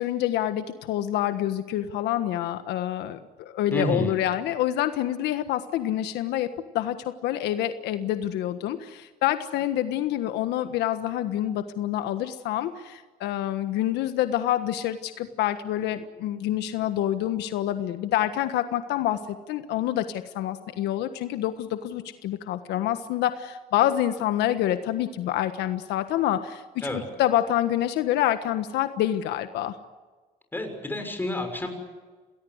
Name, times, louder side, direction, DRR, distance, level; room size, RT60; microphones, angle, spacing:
voice 1, 0.0-6.5 6.7-7.0 7.2-19.2 19.5-29.7, left 12 dB, 85° left, 10 dB, 1.5 m, -27 dB
voice 2, 3.7-4.1 26.8-27.1 30.5-31.7, left 1 dB, 10° left, 5 dB, 6.6 m, -29 dB
28.5 x 19.0 x 8.1 m, 1.3 s
cardioid pair, 110°, 17 cm